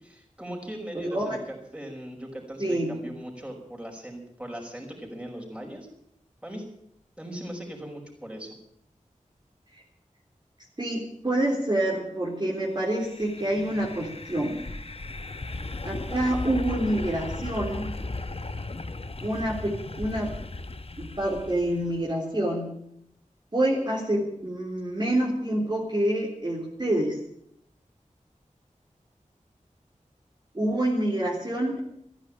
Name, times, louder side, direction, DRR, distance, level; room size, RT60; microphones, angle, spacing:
voice 1, 0.0-5.9 6.4-6.7 7.2-8.6, equal, 10° right, -1 dB, 5.5 m, -39 dB
voice 2, 0.9-1.3 2.6-2.9 10.8-14.6 15.8-17.9 19.2-20.4 21.0-22.7 23.5-27.2 30.5-31.8, right 1 dB, 35° right, -4 dB, 3.8 m, -27 dB
sound 1, 12.8-22.0, left 2 dB, 45° left, 1.1 m, -36 dB
14.5 x 11.0 x 8.9 m, 0.73 s
wide cardioid pair, 55°, 13 cm